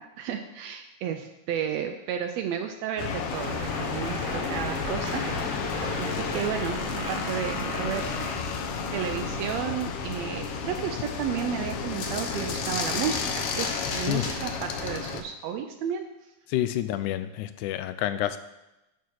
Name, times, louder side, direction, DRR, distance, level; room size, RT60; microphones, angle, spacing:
voice 1, 0.0-5.6 6.0-8.1 8.9-16.1, right 8 dB, 80° right, 7 dB, 1.6 m, -32 dB
sound 1, 3.0-15.2, left 5 dB, 70° left, 1.4 m, -32 dB
Stream, 3.3-8.3, right 1 dB, 45° right, 1.0 m, -37 dB
sound 2, 4.4-4.5 4.7-4.8 5.1-5.2 5.4-5.5 5.7-5.8 6.0-6.1 6.3-6.4 6.6-6.7 7.0-7.1 7.3-7.4 7.6-7.7 7.9-8.0 8.2-8.3 8.5-8.6 8.9-9.0 9.2-9.3 9.5-9.6 9.8-9.9 10.1-10.2 10.4-10.5 10.7-10.8 11.1-11.2 11.4-11.5 11.7-11.8 12.0-14.5, left 3 dB, 55° left, 1.8 m, -41 dB
voice 2, 16.5-18.4, left 13 dB, 90° left, 12 dB, 2.0 m, -28 dB
9.3 x 4.3 x 6.2 m, 0.96 s
omnidirectional pair, 3.4 m